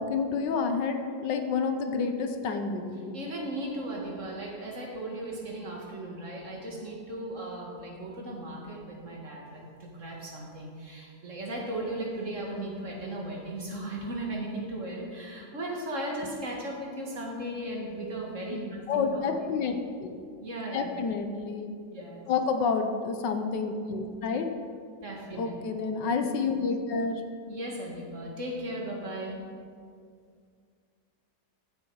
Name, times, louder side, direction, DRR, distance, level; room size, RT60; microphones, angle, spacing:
voice 1, 0.0-3.1 18.5-18.6 18.9-20.2 20.7-21.7 22.3-24.5 25.4-27.2, left 5 dB, 85° left, 6 dB, 1.6 m, -29 dB
voice 2, 3.1-19.2 20.4-20.9 21.9-22.2 25.0-25.5 27.5-29.4, right 1 dB, 45° right, -1 dB, 2.1 m, -36 dB
15.5 x 7.6 x 4.8 m, 2.2 s
omnidirectional pair, 1.9 m